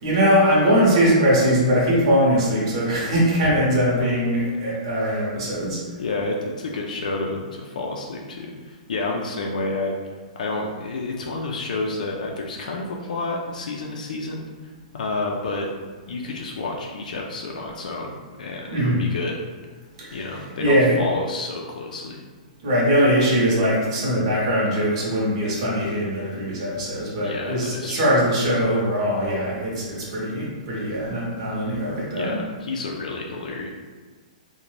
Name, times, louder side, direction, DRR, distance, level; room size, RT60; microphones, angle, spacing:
voice 1, 0.0-5.8 18.7-19.0 20.0-20.2 20.6-21.0 22.6-32.4, equal, 40° right, -6 dB, 0.8 m, -21 dB
voice 2, 6.0-10.0 10.4-14.5 14.9-15.7 16.1-19.4 20.1-22.2 27.2-28.0 32.1-33.7, left 3 dB, 90° left, -1 dB, 0.4 m, -29 dB
2.5 x 2.1 x 3.1 m, 1.4 s
hypercardioid pair, 170°, 4 cm